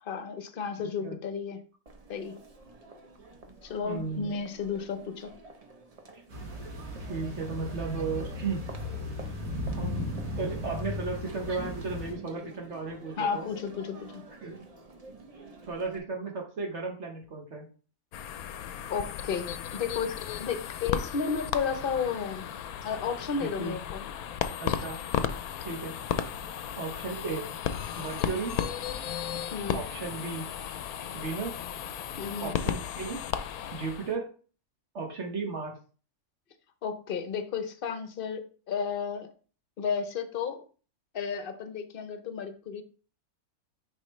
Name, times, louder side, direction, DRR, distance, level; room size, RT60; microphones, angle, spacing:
voice 1, 0.0-1.6 2.1-2.3 3.6-5.3 13.2-14.2 18.9-24.0 29.5-29.8 32.2-32.5 36.8-39.3 39.8-40.6 41.1-42.8, left 6 dB, 45° left, 8 dB, 0.8 m, -33 dB
Crowd, 1.9-16.0, right 2 dB, 35° right, 0.7 m, -49 dB
voice 2, 3.8-4.3 6.1-6.2 7.1-8.6 9.7-10.1 10.4-13.5 14.4-14.6 15.7-17.7 23.4-23.8 24.6-25.0 25.6-25.9 26.8-27.4 28.0-28.6 29.7-30.5 31.1-31.6 32.4-33.2 33.7-34.3 34.9-35.8, right 4 dB, 55° right, 0 dB, 1.4 m, -35 dB
sound 1, 6.3-12.1, left 1 dB, 70° right, 1.9 m, -36 dB
sound 2, 18.1-34.1, left 9 dB, 85° left, 1.1 m, -35 dB
9.6 x 3.6 x 3.2 m, 0.39 s
omnidirectional pair, 1.5 m